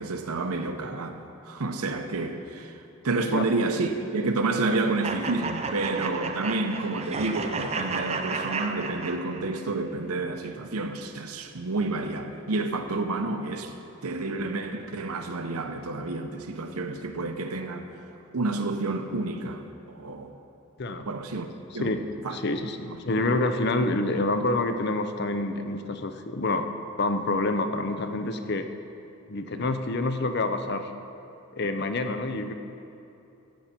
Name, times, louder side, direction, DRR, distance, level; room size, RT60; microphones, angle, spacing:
voice 1, 0.0-13.7 14.0-17.9 18.3-20.3 21.1-21.5 21.7-21.9 22.2-22.4 22.9-23.0, right 3 dB, 85° right, 6 dB, 0.8 m, -29 dB
sound 1, 5.0-9.6, right 4 dB, 30° right, 0.5 m, -32 dB
voice 2, 21.7-22.0 22.3-26.7 27.0-28.7 29.3-30.9 31.5-32.5, left 2 dB, 50° left, 8 dB, 0.5 m, -27 dB
14.5 x 8.1 x 4.3 m, 2.7 s
head